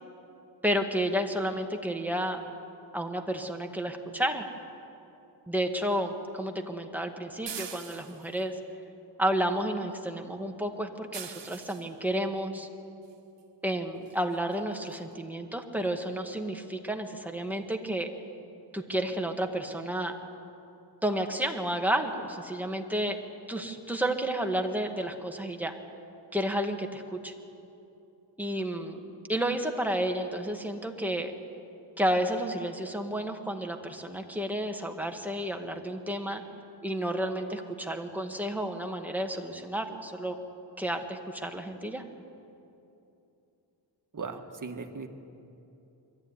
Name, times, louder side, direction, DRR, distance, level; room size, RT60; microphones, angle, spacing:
voice 1, 0.6-2.4 2.9-4.4 5.5-8.5 9.2-12.7 13.6-18.1 18.7-20.1 21.0-23.2 23.5-25.7 26.3-27.3 28.4-29.0 29.3-31.3 32.0-36.4 36.8-40.3 40.8-42.0, right 1 dB, 5° right, 3 dB, 1.8 m, -31 dB
sound 1, 7.5-8.4 11.1-11.9 13.4-13.5 14.1-14.2 14.5-14.6 14.9-15.0, right 7 dB, 65° right, 1.6 m, -42 dB
voice 2, 44.1-45.1, right 4 dB, 40° right, 5 dB, 1.7 m, -38 dB
23.0 x 14.0 x 9.8 m, 2.8 s
cardioid pair, 85°, 46 cm